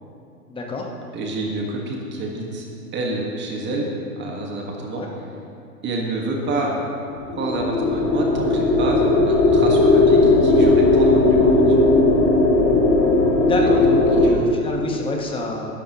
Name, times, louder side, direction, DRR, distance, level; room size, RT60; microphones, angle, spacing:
voice 1, 0.5-0.9 4.9-5.1 13.5-15.7, left 2 dB, 10° left, 0 dB, 1.3 m, -27 dB
voice 2, 1.1-2.7 2.9-3.9 4.2-5.2 5.8-6.7 7.4-11.9 13.6-14.5, right 2 dB, 20° right, -1 dB, 1.6 m, -28 dB
sound 1, 7.2-14.3, left 2 dB, 25° left, 2.0 m, -16 dB
19.0 x 11.0 x 3.0 m, 2.6 s
hypercardioid pair, 120°, 48 cm